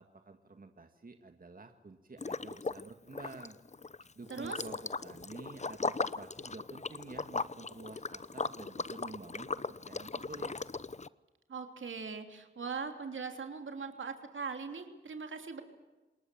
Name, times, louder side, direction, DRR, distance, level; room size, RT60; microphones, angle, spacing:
voice 1, 0.0-3.6 4.1-10.6, right 3 dB, 45° right, 6 dB, 1.9 m, -50 dB
Liquid, 2.2-2.9 3.1-11.1, left 4 dB, 35° left, 0.8 m, -38 dB
voice 2, 4.3-4.6 11.5-15.6, right 5 dB, 70° right, 6 dB, 3.2 m, -40 dB
28.5 x 19.5 x 7.7 m, 1.1 s
cardioid pair, 40°, 20 cm